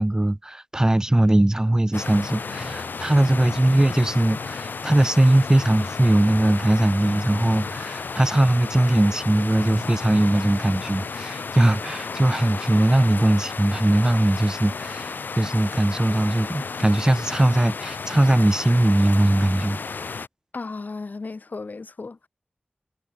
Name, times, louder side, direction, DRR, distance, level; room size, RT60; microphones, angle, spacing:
voice 1, 0.0-19.8, right 1 dB, 20° right, 0.9 m, -20 dB
sound 1, 1.9-20.3, left 4 dB, 85° left, 0.6 m, -33 dB
voice 2, 20.5-22.3, left 3 dB, 65° left, 2.2 m, -35 dB
wide cardioid pair, 60°, 3 cm